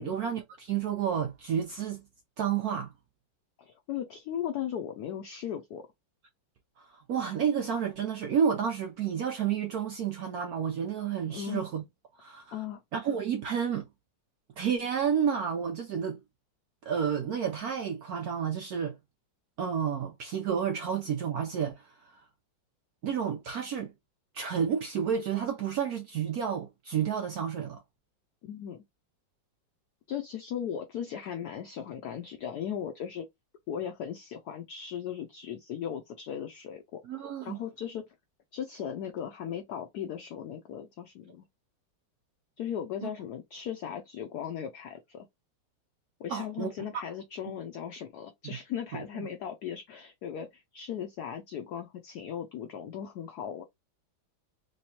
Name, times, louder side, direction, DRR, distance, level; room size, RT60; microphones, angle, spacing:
voice 1, 0.0-2.0 2.4-2.9 6.8-11.8 12.2-12.5 12.9-13.8 14.6-16.2 16.8-19.0 19.6-22.1 23.0-23.9 24.3-27.8 37.0-37.6 43.0-43.1 46.3-46.7 48.9-49.3, right 7 dB, 75° right, 0.8 m, -30 dB
voice 2, 3.6-5.8 11.3-11.7 12.5-12.8 28.4-28.8 30.1-33.3 33.7-37.0 37.4-38.1 38.5-41.5 42.6-45.3 46.2-53.6, left 9 dB, 85° left, 0.8 m, -37 dB
3.5 x 3.0 x 2.8 m
omnidirectional pair, 2.2 m